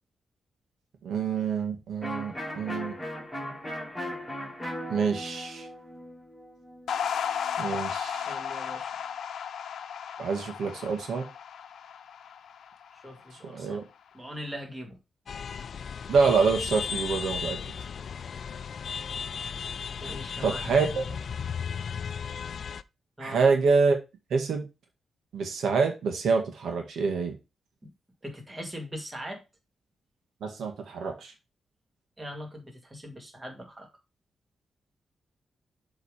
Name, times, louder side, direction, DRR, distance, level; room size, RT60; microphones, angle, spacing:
voice 1, 1.0-2.9 4.9-5.7 7.6-8.3 10.2-11.2 13.4-13.8 16.1-17.6 20.4-21.0 23.2-24.0 24.3-24.6 25.3-27.3 30.4-31.3, right 5 dB, 80° right, 1.8 m, -26 dB
Electric guitar, 2.0-7.6, equal, ahead, 3.4 m, -38 dB
sound 1, 6.9-13.4, left 8 dB, 85° left, 0.8 m, -34 dB
voice 2, 8.3-8.9 13.0-13.8 14.1-15.0 20.0-20.7 23.2-23.5 28.2-29.4 32.2-33.9, equal, 15° right, 2.0 m, -40 dB
sound 2, 15.3-22.8, left 7 dB, 55° left, 0.4 m, -35 dB
7.3 x 3.9 x 4.9 m
wide cardioid pair, 145°, 0 cm